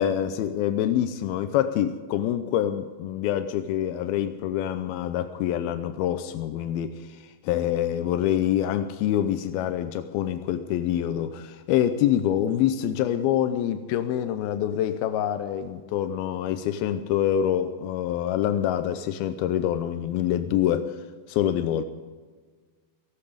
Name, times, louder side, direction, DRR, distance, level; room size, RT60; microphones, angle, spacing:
voice 1, 0.0-20.9 21.3-21.8, left 10 dB, 85° left, 10 dB, 2.6 m, -26 dB
18.0 x 15.5 x 5.1 m, 1.5 s
omnidirectional pair, 4.3 m